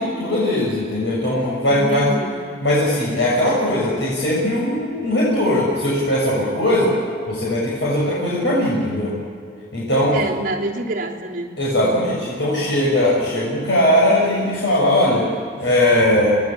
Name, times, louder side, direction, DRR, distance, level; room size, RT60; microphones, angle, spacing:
voice 1, 0.0-2.1 2.6-6.9 7.3-9.1 9.7-10.2 11.6-15.3 15.6-16.3, left 1 dB, 70° left, -5 dB, 6.9 m, -19 dB
voice 2, 1.7-2.4 10.1-12.1, right 1 dB, 45° right, -4 dB, 3.1 m, -27 dB
27.5 x 20.0 x 7.4 m, 2.3 s
head